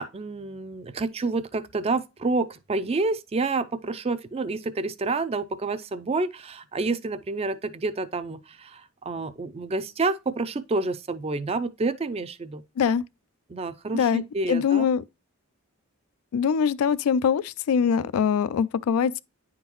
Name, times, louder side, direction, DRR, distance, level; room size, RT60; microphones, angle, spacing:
voice 1, 0.0-12.6 13.5-14.9, right 3 dB, 30° right, 0.4 m, -29 dB
voice 2, 14.5-15.0 16.3-19.2, left 7 dB, 85° left, 0.3 m, -23 dB
9.8 x 3.7 x 3.0 m
head